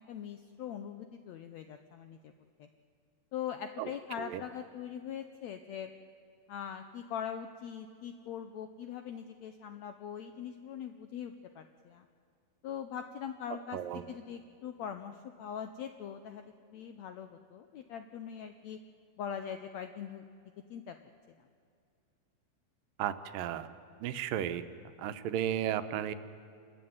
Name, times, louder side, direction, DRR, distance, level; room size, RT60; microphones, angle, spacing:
voice 1, 0.0-2.3 2.6-2.7 3.3-5.9 6.5-12.1 12.6-18.8 19.2-20.2 20.7-20.9, left 8 dB, 80° left, 8 dB, 1.6 m, -42 dB
voice 2, 23.0-23.7 24.0-24.6 25.0-26.1, right 10 dB, 80° right, 11 dB, 2.5 m, -34 dB
29.0 x 13.0 x 9.5 m, 2.4 s
omnidirectional pair, 4.0 m